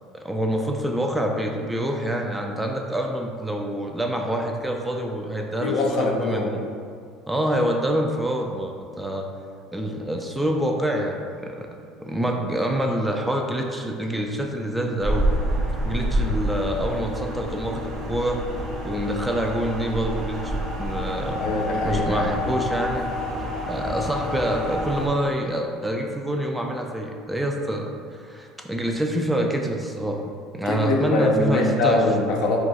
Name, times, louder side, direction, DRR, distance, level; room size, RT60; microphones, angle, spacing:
voice 1, 0.1-6.6 7.3-9.3 9.7-11.7 12.0-15.3 15.9-18.4 18.8-21.4 21.9-23.1 23.7-30.2 30.5-32.0, right 1 dB, 10° right, 1 dB, 0.3 m, -26 dB
voice 2, 5.6-6.5 21.4-22.3 30.7-32.6, left 2 dB, 65° left, 0 dB, 0.5 m, -23 dB
sound 1, 15.0-25.1, equal, 50° right, 0.6 m, -28 dB
2.3 x 2.2 x 3.9 m, 2.2 s
supercardioid pair, 90°, 0 cm